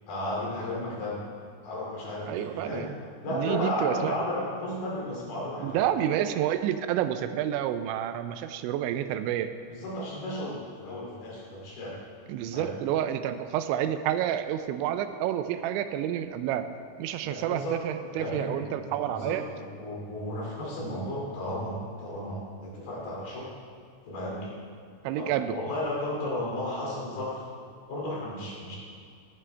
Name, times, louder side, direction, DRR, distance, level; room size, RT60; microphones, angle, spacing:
voice 1, 0.1-1.2 1.6-2.9 3.2-5.9 9.7-12.0 12.5-12.7 17.2-17.7 18.2-23.5 24.0-24.5 25.2-27.4 27.9-28.8, left 1 dB, 60° left, -5 dB, 4.3 m, -34 dB
voice 2, 2.3-2.9 3.3-4.3 5.6-9.5 12.3-16.7 17.0-19.4 25.0-25.6, right 11 dB, 85° right, 10 dB, 2.9 m, -29 dB
14.5 x 11.0 x 3.3 m, 2.3 s
omnidirectional pair, 5.3 m